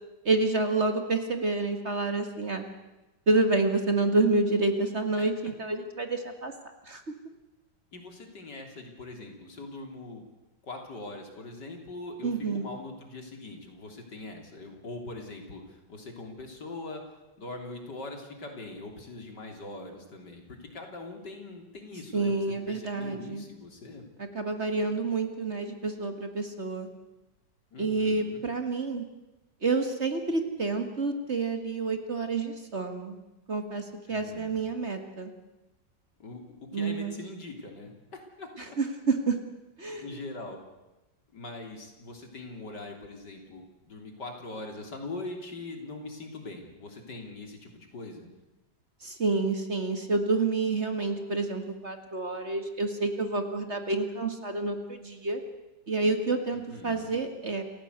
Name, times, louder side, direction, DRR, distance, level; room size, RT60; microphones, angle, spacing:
voice 1, 0.3-2.7 3.3-6.5 6.9-7.0 12.2-12.7 22.1-23.4 24.2-26.9 27.8-29.0 29.6-33.2 33.5-35.3 36.7-37.2 38.8-39.4 39.8-40.1 49.0-55.4 55.9-57.6, right 3 dB, 35° right, 6 dB, 1.9 m, -28 dB
voice 2, 7.9-10.2 10.6-17.0 17.4-24.1 27.7-28.4 34.1-34.7 36.2-38.8 40.0-40.6 41.3-48.3 56.5-57.1, left 2 dB, 65° left, 3 dB, 3.9 m, -42 dB
28.0 x 15.5 x 8.1 m, 1.0 s
omnidirectional pair, 2.0 m